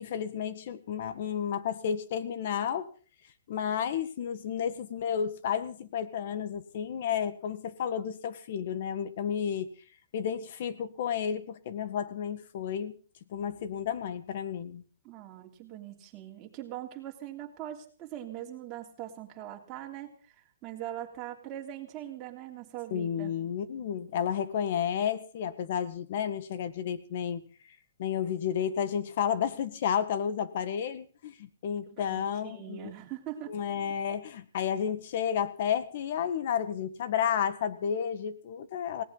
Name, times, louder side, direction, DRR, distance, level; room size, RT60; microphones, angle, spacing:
voice 1, 0.0-2.9 3.5-9.7 10.1-12.9 13.3-14.8 22.9-27.4 28.0-32.9 33.5-39.0, left 8 dB, 50° left, 13 dB, 1.6 m, -32 dB
voice 2, 15.0-20.2 20.6-23.3 31.9-33.6, right 12 dB, 25° right, 1 dB, 3.2 m, -41 dB
19.5 x 18.0 x 4.0 m, 0.40 s
hypercardioid pair, 160°, 0 cm